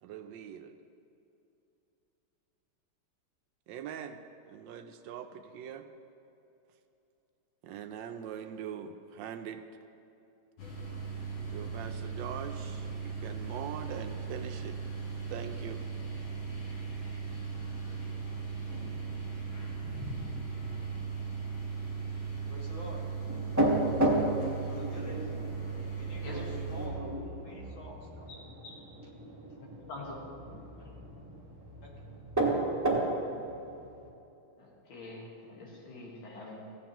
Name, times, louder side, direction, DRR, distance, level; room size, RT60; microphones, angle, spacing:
voice 1, 0.0-0.7 3.7-4.2 4.5-5.9 7.6-9.6 11.5-14.8 15.3-15.8, right 8 dB, 75° right, 7 dB, 1.2 m, -42 dB
sound 1, 10.6-26.9, right 5 dB, 85° left, 2.5 m, -38 dB
voice 2, 22.5-23.0 24.6-25.3 25.9-27.1 27.4-28.3 29.0-29.1 30.8-30.9 31.8-32.0, left 1 dB, 50° left, -3 dB, 2.0 m, -47 dB
sound 2, 23.3-34.1, right 1 dB, 10° right, 1.0 m, -33 dB
voice 3, 34.6-36.6, left 2 dB, 70° left, -3 dB, 2.3 m, -45 dB
15.5 x 9.1 x 3.0 m, 2.8 s
omnidirectional pair, 2.3 m